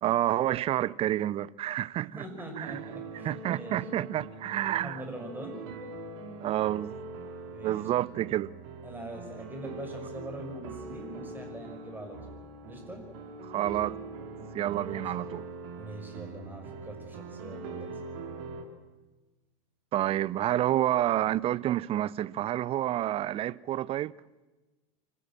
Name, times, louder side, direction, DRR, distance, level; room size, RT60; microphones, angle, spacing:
voice 1, 0.0-2.2 2.6-2.8 3.2-5.0 6.4-6.9 7.6-8.5 13.5-14.0 14.5-15.4 19.9-24.1, right 13 dB, 35° right, 0.6 m, -29 dB
voice 2, 2.1-3.8 4.8-5.7 7.4-7.9 8.8-12.3 12.7-13.0 14.7-15.1 15.8-18.0, right 1 dB, 10° right, 5.8 m, -43 dB
sound 1, 2.7-18.6, right 3 dB, 55° right, 3.2 m, -42 dB
25.0 x 15.5 x 7.5 m
figure-of-eight pair, 80°, 18 cm